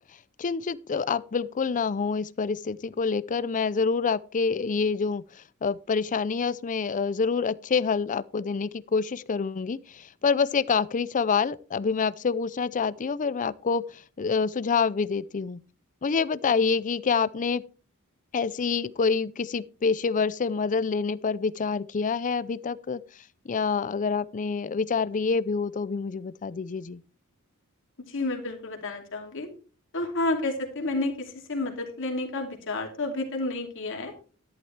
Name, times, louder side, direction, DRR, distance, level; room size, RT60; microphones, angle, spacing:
voice 1, 0.4-5.2 5.6-13.8 14.2-15.6 16.0-17.6 18.3-23.0 23.5-27.0, left 5 dB, 35° left, 0.5 m, -27 dB
voice 2, 28.1-29.5 29.9-31.1 31.5-34.1, left 2 dB, 60° left, 2.6 m, -30 dB
11.5 x 11.0 x 3.3 m
head